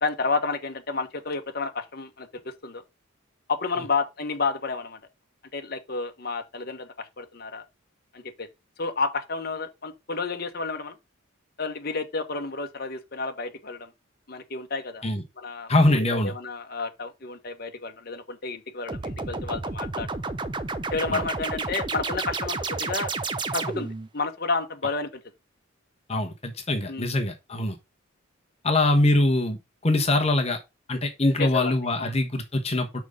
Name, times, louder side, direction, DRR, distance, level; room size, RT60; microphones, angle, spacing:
voice 1, 0.0-2.8 3.5-5.0 5.5-7.6 8.1-8.5 8.8-10.9 11.6-13.9 14.3-15.0 15.4-20.1 20.9-23.1 23.5-25.2 26.9-27.2 31.4-32.1, left 4 dB, 50° left, 1.2 m, -31 dB
voice 2, 15.7-16.3 21.1-21.2 26.1-27.7 28.6-29.6 29.8-30.6 30.9-33.0, left 2 dB, 30° left, 1.2 m, -23 dB
sound 1, 18.9-24.1, right 3 dB, 20° right, 0.6 m, -31 dB
6.2 x 5.3 x 4.9 m
head